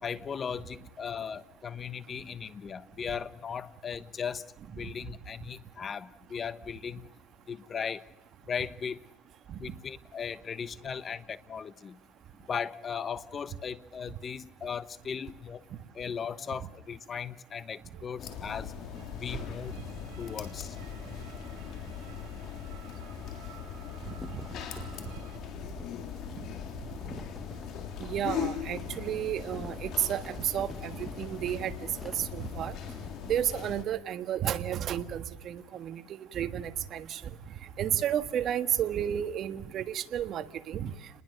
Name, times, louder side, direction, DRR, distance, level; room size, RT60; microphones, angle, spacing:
voice 1, 0.0-7.1 7.5-8.0 8.4-9.0 9.6-12.0 12.5-15.7 15.9-18.7 19.1-19.7 20.2-20.8, left 7 dB, 30° left, 16 dB, 1.1 m, -37 dB
sound 1, 17.9-25.4, right 9 dB, 75° right, 6.0 m, -56 dB
sound 2, 18.2-33.8, left 7 dB, 50° left, 3.4 m, -40 dB
sound 3, 24.2-33.1, left 1 dB, 5° left, 1.3 m, -49 dB
voice 2, 28.0-31.7 32.0-32.7 33.3-36.0 36.3-37.2 37.8-40.9, right 10 dB, 45° right, 10 dB, 1.5 m, -32 dB
29.5 x 21.0 x 6.6 m, 0.94 s
cardioid pair, 130°, 0 cm